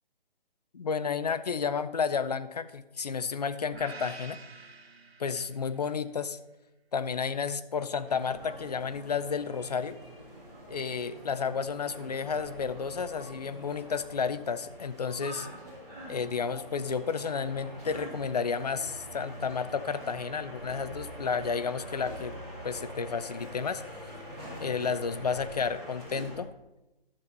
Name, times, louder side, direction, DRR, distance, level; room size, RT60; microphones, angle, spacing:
voice 1, 0.7-4.4 5.2-6.4 6.9-10.0 10.7-15.5 16.1-22.3 22.6-23.8 24.6-26.5, left 6 dB, 45° left, 13 dB, 0.5 m, -32 dB
sound 1, 3.7-5.9, right 4 dB, 85° right, 1.2 m, -47 dB
sound 2, 8.0-26.4, equal, ahead, 0.6 m, -44 dB
11.5 x 6.9 x 4.0 m, 0.97 s
hypercardioid pair, 160°, 30 cm